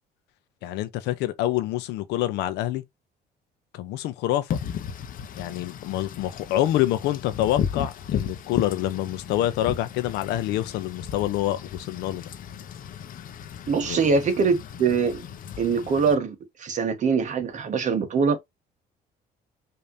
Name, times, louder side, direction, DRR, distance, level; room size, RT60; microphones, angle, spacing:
voice 1, 0.6-2.8 3.7-4.6 5.4-12.2 13.8-14.0, left 13 dB, 90° left, 0.8 m, -26 dB
Wind / Rain, 4.5-16.1, left 8 dB, 55° left, 0.8 m, -35 dB
voice 2, 13.7-15.2 15.6-18.4, right 5 dB, 45° right, 1.2 m, -23 dB
5.2 x 2.9 x 2.6 m
cardioid pair, 110°, 17 cm